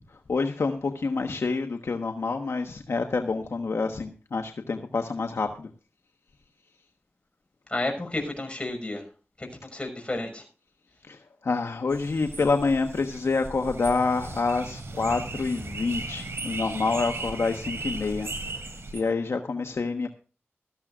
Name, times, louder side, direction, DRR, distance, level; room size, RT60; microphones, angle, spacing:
voice 1, 0.3-5.7 11.1-11.2 11.4-18.3 18.9-20.1, left 4 dB, 70° left, 5 dB, 1.2 m, -27 dB
voice 2, 7.7-9.0 9.4-10.4, left 2 dB, 25° left, 3 dB, 5.7 m, -31 dB
sound 1, 11.9-19.0, right 2 dB, 70° right, 2.9 m, -37 dB
17.5 x 13.5 x 2.5 m, 0.35 s
wide cardioid pair, 65°, 5 cm